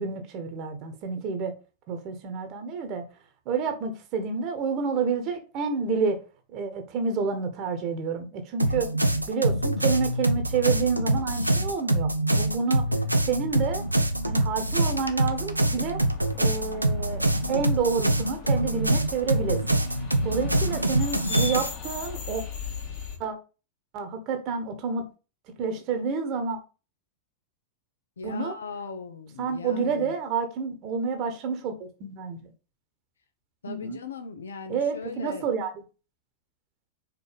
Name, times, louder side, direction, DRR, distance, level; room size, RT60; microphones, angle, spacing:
voice 1, 0.0-1.5 1.9-3.0 3.4-6.2 6.5-8.9 9.3-12.8 13.3-13.8 14.2-16.0 16.4-19.8 20.2-22.4 23.2-23.3 23.9-25.0 25.6-26.6 28.2-28.5 29.4-32.5 33.7-34.0 34.7-35.7, right 5 dB, 40° right, 1.3 m, -29 dB
sound 1, 8.6-21.7, right 1 dB, 85° right, 0.6 m, -25 dB
sound 2, 13.5-23.2, left 6 dB, 45° left, 2.2 m, -39 dB
voice 2, 28.2-30.1 33.6-35.5, left 4 dB, 70° left, 1.0 m, -39 dB
5.1 x 4.5 x 5.1 m
figure-of-eight pair, 90°, 0 cm